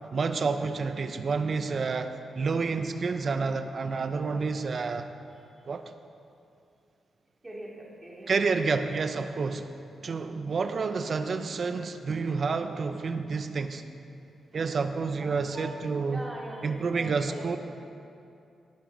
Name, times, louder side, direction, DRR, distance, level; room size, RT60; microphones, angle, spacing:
voice 1, 0.1-5.1 5.7-5.8 8.3-9.7 10.0-13.8 14.5-16.2 16.6-17.6, right 4 dB, 55° right, 9 dB, 0.7 m, -29 dB
voice 2, 7.4-8.3 15.1-15.8 16.1-17.6, right 1 dB, 20° right, -4 dB, 2.7 m, -41 dB
18.5 x 6.4 x 4.7 m, 2.6 s
cardioid pair, 80°, 0 cm